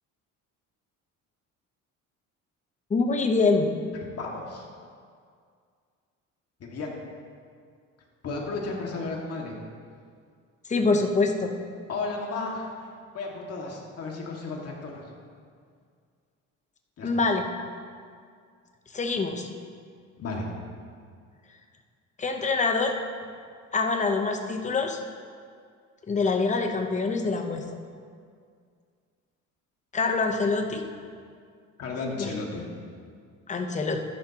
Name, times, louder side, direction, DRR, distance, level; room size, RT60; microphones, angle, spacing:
voice 1, 2.9-3.7 10.7-11.5 17.0-17.4 18.9-19.5 22.2-23.0 23.7-25.0 26.1-27.6 29.9-30.8 32.2-32.3 33.5-34.0, left 3 dB, 20° left, 4 dB, 0.9 m, -25 dB
voice 2, 4.1-4.7 6.6-7.0 8.2-9.5 11.9-12.9 13.1-15.0 17.0-17.2 20.2-20.6 31.8-32.7, left 3 dB, 50° left, -1 dB, 2.0 m, -33 dB
12.5 x 10.5 x 2.9 m, 2.1 s
cardioid pair, 125°, 32 cm